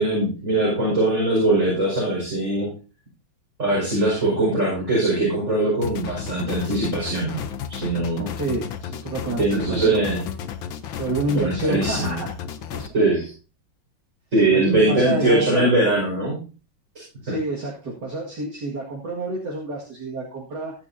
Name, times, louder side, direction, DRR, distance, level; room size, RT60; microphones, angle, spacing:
voice 1, 0.0-2.7 3.6-8.3 9.4-10.2 11.3-12.2 12.9-13.3 14.3-16.4 17.3-17.4, right 2 dB, 40° right, -5 dB, 5.8 m, -21 dB
sound 1, 5.8-12.9, left 8 dB, 80° left, 1.7 m, -33 dB
voice 2, 8.4-9.9 11.0-12.3 12.7-12.8 14.5-15.7 17.2-20.7, right 2 dB, 60° right, -3 dB, 2.6 m, -28 dB
21.0 x 7.6 x 2.7 m, 0.35 s
omnidirectional pair, 2.1 m